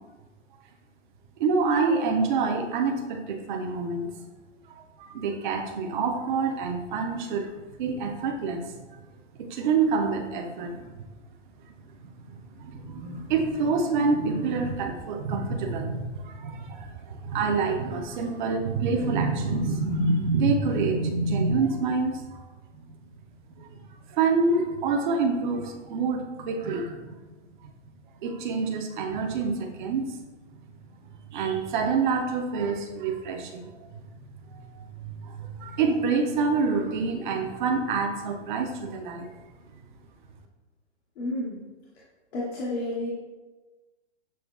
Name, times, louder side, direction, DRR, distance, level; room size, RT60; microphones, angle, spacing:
voice 1, 1.4-4.1 4.7-7.5 7.8-9.0 9.4-10.9 11.7-11.8 12.0-22.4 22.7-23.0 23.5-23.8 24.1-27.2 27.6-27.7 28.2-30.2 30.5-30.6 31.3-33.9 34.5-39.3, right 4 dB, 40° right, 3 dB, 0.6 m, -27 dB
voice 2, 41.2-41.6 42.3-43.1, left 1 dB, 60° left, -6 dB, 1.0 m, -30 dB
7.0 x 2.9 x 2.4 m, 1.2 s
hypercardioid pair, 140°, 36 cm